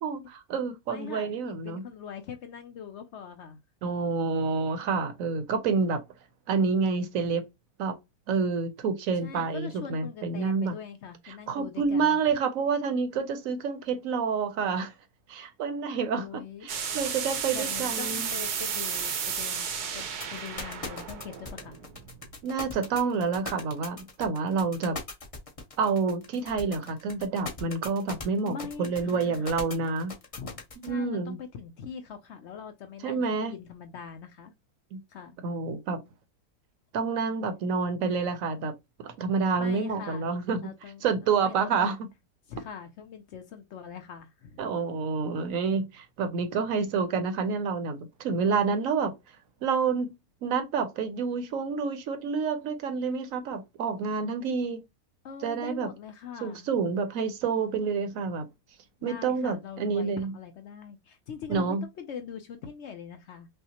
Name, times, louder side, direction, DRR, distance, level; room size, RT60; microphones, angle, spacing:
voice 1, 0.0-1.8 3.8-6.0 6.5-7.4 7.8-7.9 8.3-10.7 11.5-14.9 15.3-18.3 22.4-25.0 25.8-30.1 30.8-31.4 33.0-33.5 34.9-35.0 35.4-36.0 36.9-38.7 39.0-40.6 41.0-41.9 44.6-49.1 49.6-50.1 50.4-54.8 55.4-55.9 56.4-58.4 59.0-60.3 61.5-61.8, right 5 dB, 65° right, 1.0 m, -28 dB
voice 2, 0.9-3.6 9.2-12.2 16.2-17.0 17.5-21.8 28.5-29.5 30.4-34.5 35.1-35.4 39.6-40.3 40.6-41.0 41.4-41.9 42.5-44.7 55.2-56.7 59.0-63.5, left 7 dB, 65° left, 0.7 m, -42 dB
sound 1, 16.7-22.4, right 7 dB, 85° right, 1.3 m, -33 dB
sound 2, 20.0-30.9, left 3 dB, 30° left, 0.7 m, -39 dB
5.5 x 2.1 x 2.9 m
omnidirectional pair, 1.6 m